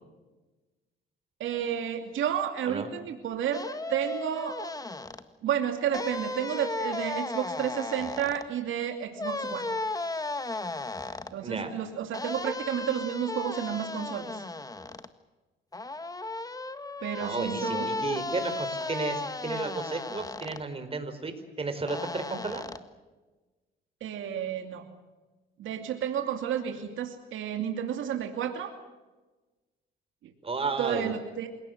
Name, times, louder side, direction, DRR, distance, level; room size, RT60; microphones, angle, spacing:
voice 1, 1.4-4.6 5.4-9.7 11.3-14.4 17.0-17.9 24.0-24.8 25.6-28.7 30.8-31.5, right 9 dB, 80° right, 5 dB, 2.6 m, -31 dB
sound 1, 3.5-5.2 5.9-8.4 9.2-11.3 12.1-15.1 15.7-20.6 21.9-22.8, left 2 dB, 20° left, 1.7 m, -35 dB
voice 2, 11.4-11.7 17.2-22.6 30.4-31.1, right 3 dB, 30° right, 7 dB, 4.8 m, -33 dB
28.0 x 18.0 x 7.9 m, 1.2 s
cardioid pair, 90°, 20 cm